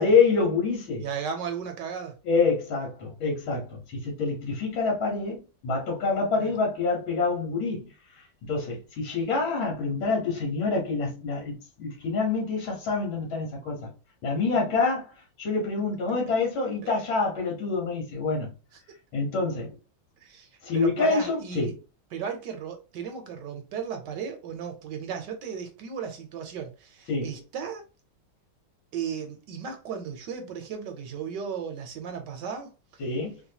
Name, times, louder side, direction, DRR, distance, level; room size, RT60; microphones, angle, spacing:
voice 1, 0.0-1.0 2.2-7.9 8.5-13.9 14.2-15.1 15.4-18.5 19.1-19.8 20.6-21.8 27.1-27.3 33.0-33.4, left 4 dB, 80° left, 1.9 m, -26 dB
voice 2, 1.0-2.1 6.4-6.5 16.8-16.9 20.2-21.7 22.1-27.8 28.9-33.0, right 7 dB, 70° right, 1.2 m, -35 dB
3.8 x 2.2 x 2.8 m
omnidirectional pair, 2.1 m